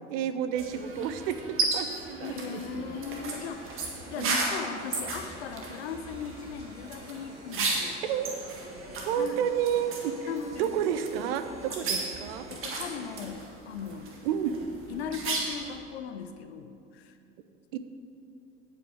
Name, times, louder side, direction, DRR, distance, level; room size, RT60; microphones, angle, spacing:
voice 1, 0.0-3.0 4.1-4.4 7.8-8.3 9.0-12.5 14.2-14.6 17.7-17.8, right 9 dB, 55° right, 10 dB, 0.7 m, -31 dB
sound 1, 0.5-15.8, right 3 dB, 35° right, 1.7 m, -35 dB
voice 2, 2.2-8.0 9.1-9.4 10.3-10.7 12.5-14.2 14.9-17.2, left 6 dB, 65° left, 8 dB, 0.8 m, -38 dB
sound 2, 3.2-13.2, equal, 85° right, 2.3 m, -51 dB
9.2 x 5.8 x 7.2 m, 2.6 s
figure-of-eight pair, 75°, 34 cm